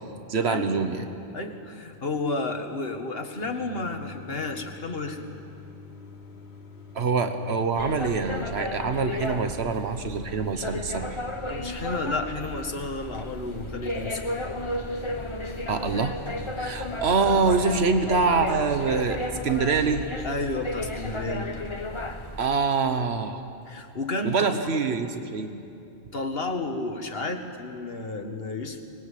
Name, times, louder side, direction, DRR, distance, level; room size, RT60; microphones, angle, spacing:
voice 1, 0.3-1.0 6.9-11.2 15.7-16.1 16.6-19.2 19.4-20.1 22.4-23.4 24.2-25.6, right 4 dB, 85° right, 8 dB, 1.4 m, -25 dB
voice 2, 1.3-5.3 11.4-14.2 20.2-21.6 23.7-24.6 26.1-28.8, left 2 dB, 70° left, 5 dB, 1.9 m, -31 dB
sound 1, 3.4-18.8, left 4 dB, 85° left, 1.8 m, -47 dB
sound 2, 7.8-22.4, left 1 dB, 30° left, 1.3 m, -34 dB
24.5 x 20.5 x 8.4 m, 2.6 s
omnidirectional pair, 1.1 m